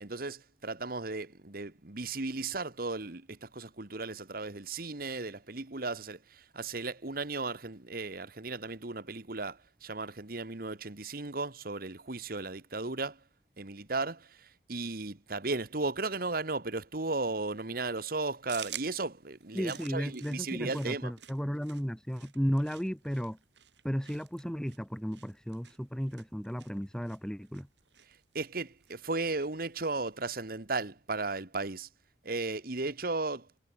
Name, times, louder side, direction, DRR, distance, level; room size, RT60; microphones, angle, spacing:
voice 1, 0.0-13.2 13.6-14.3 14.7-21.1 28.3-31.9 32.2-33.5, right 3 dB, 55° right, 1.7 m, -35 dB
sound 1, 18.5-30.5, right 11 dB, 90° right, 4.7 m, -51 dB
voice 2, 19.5-23.4 23.8-27.7, equal, 5° left, 1.4 m, -34 dB
head